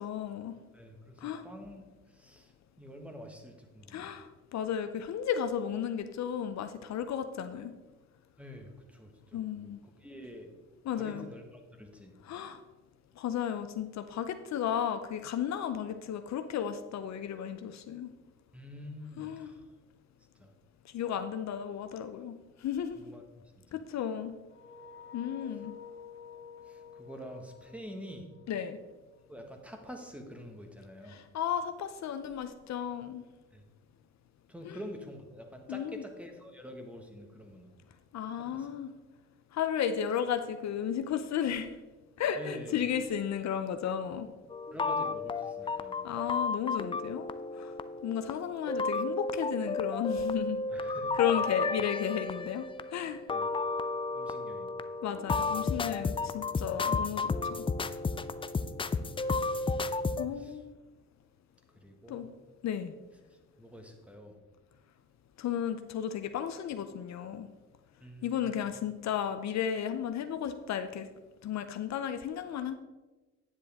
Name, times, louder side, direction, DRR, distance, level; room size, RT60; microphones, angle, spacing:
voice 1, 0.0-0.5 1.2-1.4 3.9-7.7 9.3-9.8 10.8-11.3 12.2-12.6 13.2-18.1 19.2-19.5 20.9-23.0 23.7-24.3 25.1-25.7 28.5-28.8 31.1-33.2 34.6-34.8 35.7-36.0 38.1-38.9 39.5-41.7 42.2-44.3 46.0-47.3 47.6-47.7 48.0-50.6 51.1-52.7 52.9-53.2 55.0-57.7 60.2-60.6 62.1-62.3 62.6-62.9 65.4-67.5 68.2-71.1 71.4-72.7, left 9 dB, 65° left, 9 dB, 0.6 m, -34 dB
voice 2, 0.7-1.8 2.1-2.5 2.8-4.1 8.4-10.5 11.0-11.4 11.8-12.1 18.5-19.6 20.4-20.5 22.9-23.2 26.7-28.3 29.3-31.2 33.5-33.6 34.5-37.7 38.4-38.7 42.4-42.8 44.7-46.0 50.7-51.2 53.3-53.5 54.1-54.7 55.0-55.1 60.4-60.6 61.7-62.3 63.6-64.4 68.0-68.8, equal, 5° right, 3 dB, 1.5 m, -47 dB
sound 1, 24.5-29.3, left 6 dB, 45° left, 1.4 m, -50 dB
sound 2, 44.5-60.3, left 3 dB, 20° left, 0.4 m, -33 dB
9.7 x 7.5 x 3.5 m, 1.2 s
cardioid pair, 90°, 30 cm